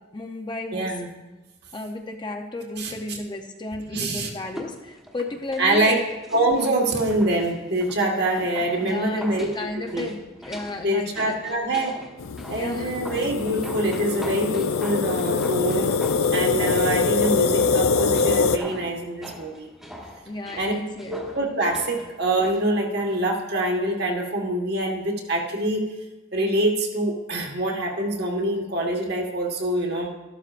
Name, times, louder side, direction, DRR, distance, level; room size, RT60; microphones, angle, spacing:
voice 1, 0.1-1.0 1.7-5.9 8.8-11.4 12.5-12.9 15.7-16.0 20.3-21.2, left 2 dB, 20° left, 4 dB, 0.6 m, -33 dB
voice 2, 0.7-1.1 2.8-2.9 3.9-4.3 5.6-6.0 6.3-9.5 9.9-10.1 10.8-11.9 12.5-16.0 16.3-19.7 20.6-20.7 21.1-25.9 26.3-30.1, right 1 dB, 50° right, 0 dB, 1.6 m, -25 dB
sound 1, 4.4-23.2 23.5-23.6, equal, ahead, 1.2 m, -42 dB
sound 2, 12.2-18.6, left 4 dB, 75° left, 0.5 m, -23 dB
13.5 x 12.0 x 2.5 m, 1.1 s
head